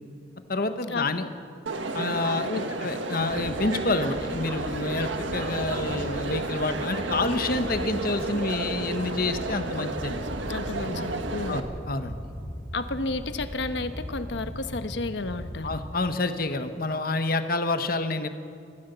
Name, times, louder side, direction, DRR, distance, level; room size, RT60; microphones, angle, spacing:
voice 1, 0.5-1.3 1.9-2.5 2.8-10.3 11.5-12.2 15.6-18.3, left 2 dB, 50° left, 9 dB, 1.2 m, -28 dB
Crowd, 1.7-11.6, right 2 dB, 90° right, 1.6 m, -32 dB
sound 1, 3.3-15.9, equal, 15° left, 4.5 m, -39 dB
voice 2, 10.5-11.7 12.7-15.7, left 3 dB, 70° left, 10 dB, 1.1 m, -32 dB
25.0 x 15.0 x 7.0 m, 2.5 s
head